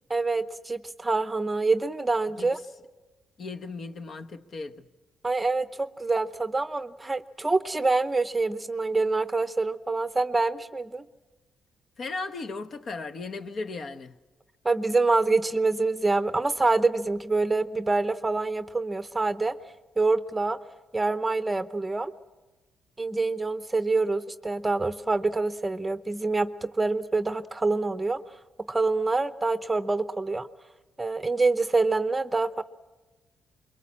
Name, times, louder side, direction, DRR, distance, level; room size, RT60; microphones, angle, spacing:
voice 1, 0.1-2.6 5.2-11.0 14.6-19.6 20.0-20.6 20.9-22.1 23.0-28.2 28.7-30.5 31.0-32.6, right 3 dB, 15° right, 0.7 m, -26 dB
voice 2, 3.4-4.9 12.0-14.2, left 3 dB, 50° left, 1.1 m, -36 dB
24.5 x 22.5 x 7.4 m
cardioid pair, 90°, 0 cm